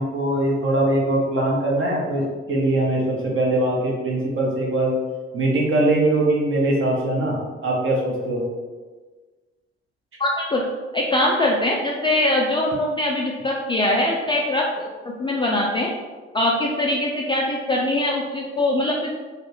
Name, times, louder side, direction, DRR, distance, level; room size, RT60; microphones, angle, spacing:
voice 1, 0.0-5.0 5.3-7.3 7.6-8.4, right 1 dB, 40° right, -3 dB, 0.9 m, -21 dB
voice 2, 10.2-10.6 10.9-14.9 15.2-15.9 16.3-19.1, left 1 dB, 15° left, -2 dB, 0.3 m, -22 dB
3.2 x 2.0 x 2.8 m, 1.4 s
figure-of-eight pair, 40°, 32 cm